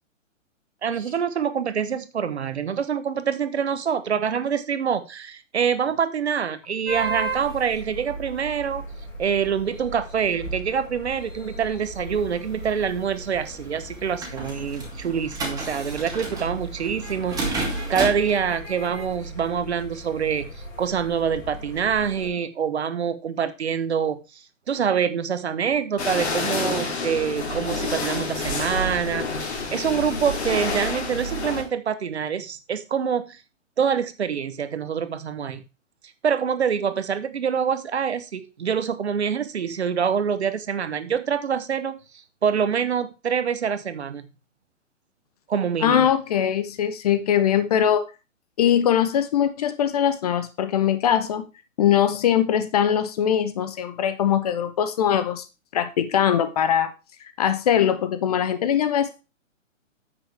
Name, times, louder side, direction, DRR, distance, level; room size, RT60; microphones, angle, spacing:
voice 1, 0.8-8.8 9.2-33.4 33.8-35.6 36.2-42.0 42.4-44.3 45.5-46.1, right 7 dB, 55° right, 12 dB, 1.1 m, -26 dB
sound 1, 6.9-22.3, right 2 dB, 75° left, 3.8 m, -37 dB
sound 2, 12.1-18.3, right 2 dB, 10° right, 2.4 m, -33 dB
sound 3, 26.0-31.6, left 3 dB, 55° left, 2.8 m, -28 dB
voice 2, 45.8-48.0 48.6-51.4 51.8-55.5 55.7-56.9 57.4-59.2, left 9 dB, 30° left, 12 dB, 0.8 m, -21 dB
9.7 x 7.8 x 3.4 m, 0.29 s
figure-of-eight pair, 125°, 39 cm